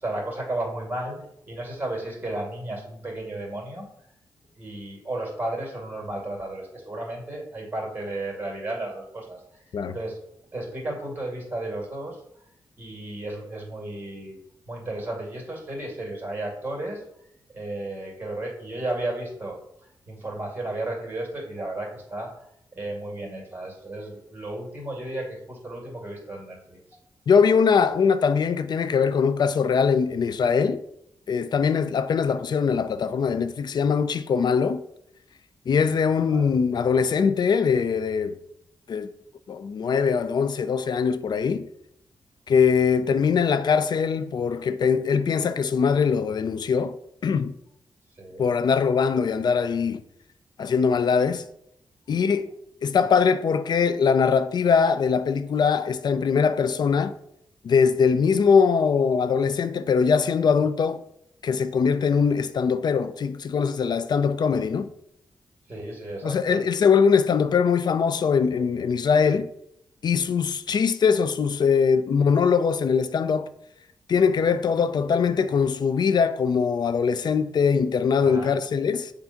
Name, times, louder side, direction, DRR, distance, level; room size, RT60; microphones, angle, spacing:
voice 1, 0.0-1.2 1.5-3.8 4.6-9.4 9.9-10.2 10.5-12.2 12.8-14.4 14.7-17.0 17.5-19.6 20.1-22.3 22.7-26.8 36.3-36.5 48.2-48.4 65.7-66.6 78.2-78.5, right 1 dB, 25° right, 2.3 m, -33 dB
voice 2, 27.3-30.8 31.3-34.8 35.7-38.4 38.9-39.1 39.5-41.7 42.5-46.9 47.2-47.5 48.4-50.0 50.6-51.4 52.1-52.5 52.8-57.1 57.6-61.0 61.4-64.9 66.2-69.5 70.0-73.5 74.1-79.1, left 6 dB, 60° left, 0.4 m, -22 dB
6.9 x 2.6 x 5.7 m
cardioid pair, 90°, 8 cm